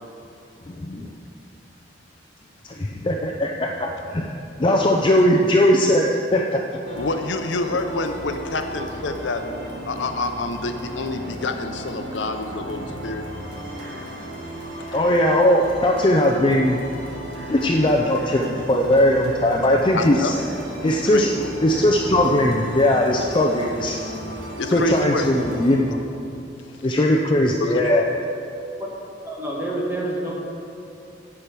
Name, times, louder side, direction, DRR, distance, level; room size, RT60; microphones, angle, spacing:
voice 1, 0.7-1.1 3.0-4.3 4.6-6.6 14.9-16.8 17.5-20.4 20.8-21.3 21.6-24.0 24.7-26.0 26.8-28.1, left 1 dB, 25° left, 1 dB, 0.5 m, -19 dB
sound 1, 6.8-25.8, right 1 dB, 85° right, 1.9 m, -35 dB
voice 2, 6.9-9.4 9.8-13.2 14.9-15.0 19.9-20.4 21.1-21.5 24.6-25.2 27.6-27.8, left 3 dB, 75° left, 7 dB, 0.6 m, -27 dB
voice 3, 29.2-30.3, right 1 dB, 15° right, -4 dB, 1.7 m, -27 dB
9.8 x 5.8 x 6.1 m, 2.7 s
head